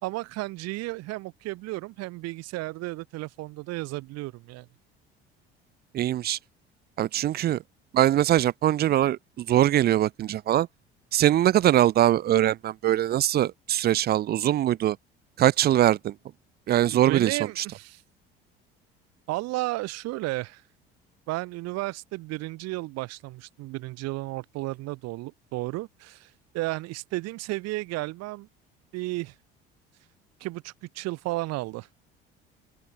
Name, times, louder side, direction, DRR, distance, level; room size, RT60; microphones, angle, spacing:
voice 1, 0.0-4.7 16.9-18.0 19.3-20.6 21.3-28.5 28.9-29.3 30.4-31.9, right 20 dB, 60° right, 2.2 m, -33 dB
voice 2, 5.9-6.4 7.0-7.6 7.9-10.7 11.1-15.0 15.4-16.1 16.7-17.6, right 12 dB, 35° right, 0.4 m, -22 dB
open air
figure-of-eight pair, 60°, 29 cm